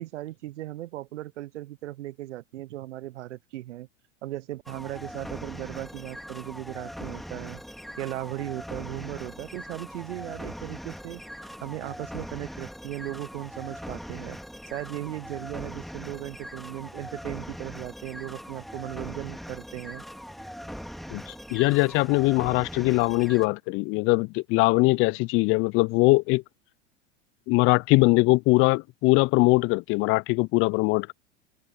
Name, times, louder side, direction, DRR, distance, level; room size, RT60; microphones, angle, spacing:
voice 1, 0.0-3.9 4.2-7.6 8.0-14.4 14.7-20.0, right 15 dB, 75° right, 0.8 m, -37 dB
sound 1, 4.7-23.5, equal, ahead, 3.4 m, -41 dB
voice 2, 21.1-26.4 27.5-31.1, left 25 dB, 35° left, 0.4 m, -22 dB
open air
hypercardioid pair, 95°, 36 cm